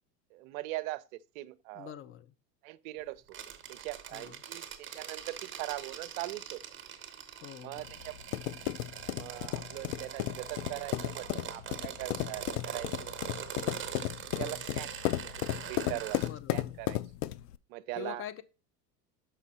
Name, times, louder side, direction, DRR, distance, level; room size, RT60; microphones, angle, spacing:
voice 1, 0.3-1.9 2.6-3.2 3.7-6.6 7.6-8.5 9.1-13.6 14.4-16.2 16.5-17.0 17.7-18.2, right 18 dB, 55° right, 0.6 m, -41 dB
voice 2, 1.7-2.3 4.1-4.4 7.4-7.9 14.4-14.6 16.3-16.8 18.0-18.4, left 11 dB, 25° left, 0.5 m, -44 dB
sound 1, 3.3-16.3, right 8 dB, 25° right, 1.1 m, -43 dB
sound 2, 7.8-17.6, left 15 dB, 70° left, 0.6 m, -35 dB
6.1 x 5.5 x 4.1 m
hypercardioid pair, 100°, 50 cm